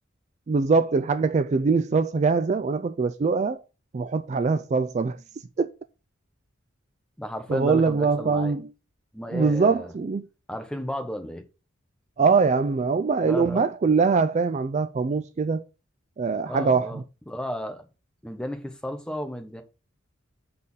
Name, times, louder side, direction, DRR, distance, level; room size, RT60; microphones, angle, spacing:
voice 1, 0.5-3.6 3.9-5.2 5.6-5.7 7.5-8.7 9.3-10.3 12.2-15.6 16.2-17.0, right 4 dB, 35° right, 0.3 m, -23 dB
voice 2, 7.2-8.5 9.1-9.9 10.5-11.4 13.2-13.6 16.4-17.0 17.3-17.8 18.2-19.6, equal, 5° left, 0.9 m, -33 dB
6.6 x 4.2 x 5.5 m
head